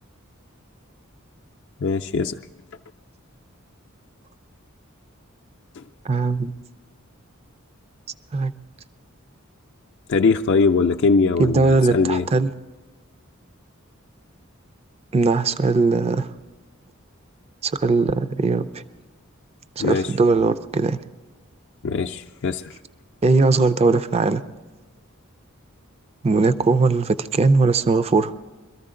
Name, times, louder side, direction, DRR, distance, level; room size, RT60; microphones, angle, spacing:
voice 1, 1.8-2.4 5.8-5.9 10.1-12.3 19.8-20.1 21.8-22.8, left 4 dB, 60° left, 1 dB, 0.5 m, -21 dB
voice 2, 6.0-6.6 8.3-8.5 11.4-12.5 15.1-16.3 17.6-18.8 19.8-21.0 23.2-24.4 26.2-28.3, right 3 dB, 30° right, 13 dB, 0.4 m, -19 dB
23.0 x 14.0 x 3.8 m, 1.3 s
head